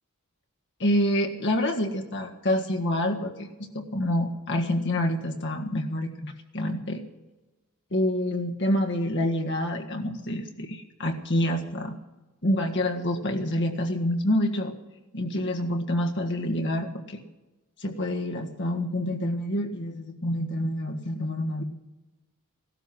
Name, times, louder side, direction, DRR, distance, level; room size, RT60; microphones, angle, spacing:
voice 1, 0.8-3.5 3.7-7.0 7.9-12.0 12.4-14.7 15.1-17.2 17.8-21.6, left 1 dB, 55° left, 3 dB, 1.6 m, -27 dB
16.5 x 12.5 x 6.1 m, 1.1 s
head